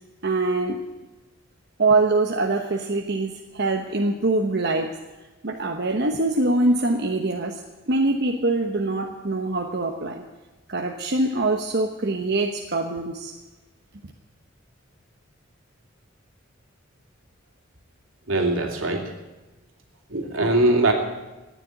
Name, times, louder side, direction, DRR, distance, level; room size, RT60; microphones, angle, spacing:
voice 1, 0.2-0.8 1.8-4.9 5.4-7.6 7.9-10.2 10.7-13.3, right 2 dB, 55° right, 2 dB, 1.1 m, -23 dB
voice 2, 18.3-19.0 20.1-20.9, right 2 dB, 75° right, 2 dB, 2.7 m, -21 dB
15.0 x 9.8 x 9.6 m, 1.1 s
head